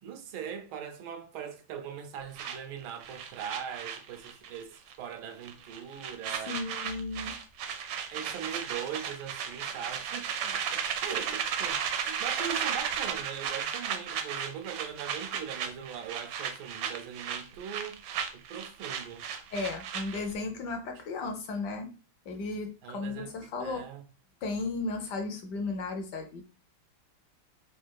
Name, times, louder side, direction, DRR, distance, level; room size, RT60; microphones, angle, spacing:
voice 1, 0.0-6.6 8.1-18.0 18.3-19.3 22.8-24.1, right 8 dB, 85° right, 1.6 m, -41 dB
sound 1, 2.4-4.6 4.9-5.1 5.4-20.3, right 7 dB, 70° right, 1.2 m, -35 dB
voice 2, 6.5-7.4 19.5-21.9 22.3-23.8 24.4-26.4, left 3 dB, 65° left, 1.2 m, -35 dB
4.5 x 2.4 x 4.6 m
omnidirectional pair, 2.2 m